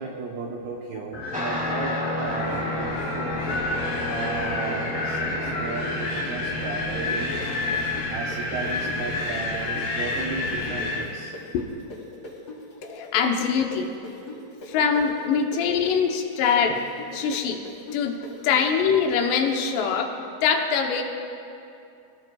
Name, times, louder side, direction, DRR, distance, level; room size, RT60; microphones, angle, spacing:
voice 1, 0.0-3.3 4.1-7.3 8.1-11.3, right 4 dB, 80° right, 0 dB, 2.2 m, -34 dB
Wind, 1.1-11.1, left 2 dB, 55° left, 4.5 m, -29 dB
Guitar, 1.3-11.1, left 1 dB, 5° right, 0.6 m, -33 dB
sound 1, 7.1-14.7 14.9-19.5, left 2 dB, 25° left, 3.3 m, -40 dB
voice 2, 12.8-13.9 14.7-16.8 17.1-17.6 17.9-18.2 18.4-20.1 20.4-21.0, left 6 dB, 75° left, 2 dB, 2.7 m, -23 dB
25.5 x 17.5 x 2.3 m, 2.6 s
omnidirectional pair, 5.7 m